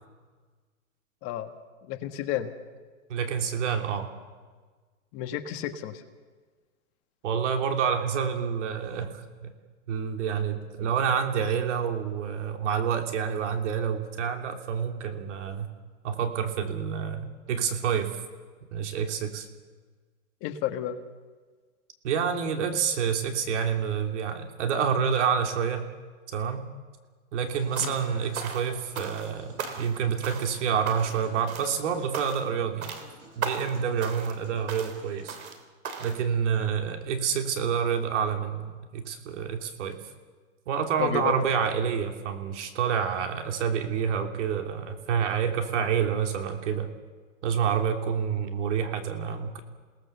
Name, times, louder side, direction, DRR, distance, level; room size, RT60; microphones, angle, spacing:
voice 1, 1.9-2.5 5.1-6.0 20.4-21.0 27.8-28.0 41.0-41.3, left 11 dB, 30° left, 8 dB, 1.5 m, -31 dB
voice 2, 3.1-4.1 7.2-9.5 9.9-15.7 16.0-18.2 18.7-19.5 22.0-25.9 26.3-26.6 27.3-32.9 33.4-35.4 36.0-40.0 40.7-46.9 47.4-49.6, right 7 dB, 60° right, 5 dB, 3.2 m, -28 dB
Human voice / Acoustic guitar / Piano, 27.5-35.5, right 3 dB, 35° right, 7.5 m, -53 dB
sound 1, 27.8-28.1 28.4-29.3 29.6-30.0 30.2-30.6 30.9-31.2 31.5-31.8 32.1-32.5 32.8-33.1 33.4-33.8 34.0-34.4 34.7-35.0 35.3-35.6 35.8-36.2, right 6 dB, 90° right, 3.4 m, -37 dB
28.5 x 18.5 x 7.0 m, 1.4 s
hypercardioid pair, 150°, 40 cm